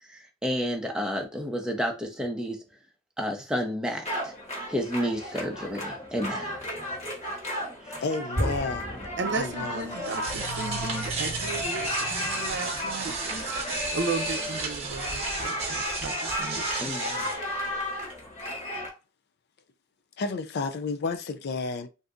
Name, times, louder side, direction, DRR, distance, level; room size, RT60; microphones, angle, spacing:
voice 1, 0.0-2.6 3.2-4.3 4.7-6.5 7.8-8.0 13.1-13.4 16.8-17.3, equal, 5° right, 0.6 m, -31 dB
sound 1, 4.0-18.9, equal, 30° left, 1.2 m, -33 dB
voice 2, 8.0-9.0 9.3-10.0 20.2-21.9, left 3 dB, 50° left, 0.4 m, -31 dB
voice 3, 9.2-13.5 13.9-16.9, right 4 dB, 55° right, 0.6 m, -35 dB
sound 2, 9.8-17.3, right 4 dB, 30° right, 0.9 m, -34 dB
3.5 x 2.6 x 2.5 m
head